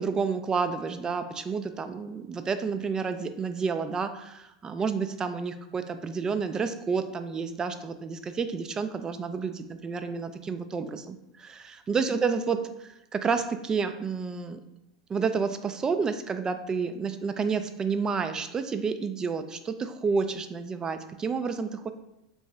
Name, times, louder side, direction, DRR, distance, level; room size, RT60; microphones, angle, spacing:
voice 1, 0.0-14.6 15.1-21.9, right 5 dB, 20° right, 9 dB, 0.3 m, -30 dB
3.0 x 2.7 x 3.4 m, 0.88 s
hypercardioid pair, 95°, 3 cm